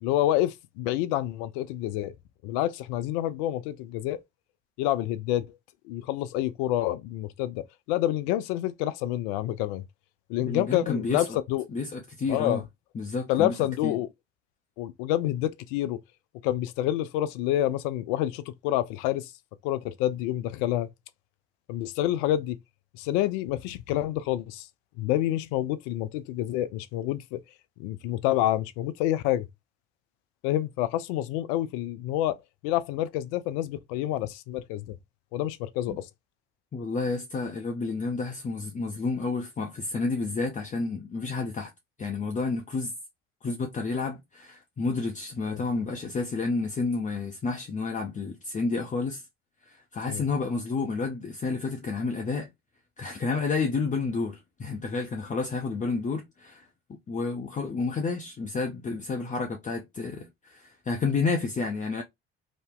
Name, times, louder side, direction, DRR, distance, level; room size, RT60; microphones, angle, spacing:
voice 1, 0.0-2.1 2.4-4.2 4.8-5.6 5.9-9.8 10.3-11.7 12.3-12.6 13.3-14.1 14.8-16.0 16.4-19.3 19.6-20.9 21.7-22.6 23.0-24.7 25.0-27.4 27.8-29.5 30.4-32.4 32.6-35.0 35.3-36.1 45.5-45.6 50.1-50.2, left 13 dB, 65° left, 0.5 m, -28 dB
voice 2, 10.4-11.4 11.7-12.6 12.9-13.5 13.8-13.9 35.9-36.0 36.7-41.7 42.0-42.9 43.4-49.2 49.7-52.5 53.0-56.6 57.1-62.0, left 4 dB, 25° left, 0.6 m, -30 dB
2.9 x 2.0 x 3.5 m
hypercardioid pair, 60°, 31 cm